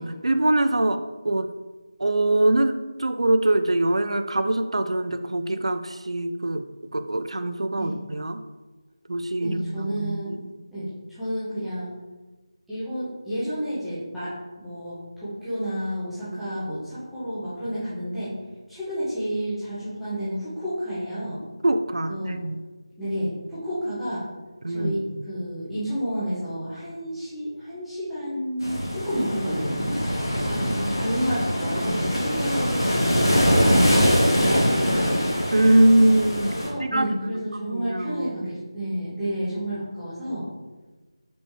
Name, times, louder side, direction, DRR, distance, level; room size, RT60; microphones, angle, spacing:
voice 1, 0.2-1.5 2.0-6.6 6.9-8.4 9.1-10.5 16.3-16.5 21.6-22.6 24.6-25.3 30.4-31.0 35.5-36.5 36.8-37.3 37.7-38.5, right 1 dB, 80° right, 9 dB, 0.4 m, -23 dB
voice 2, 9.4-10.3 10.7-11.9 12.7-18.3 18.7-21.4 22.1-22.4 23.0-24.2 24.7-30.0 30.7-35.2 36.4-40.4, equal, ahead, -17 dB, 0.4 m, -31 dB
sound 1, 28.6-36.7, equal, 45° left, 1.3 m, -23 dB
5.3 x 3.3 x 3.0 m, 1.2 s
figure-of-eight pair, 180°, 3 cm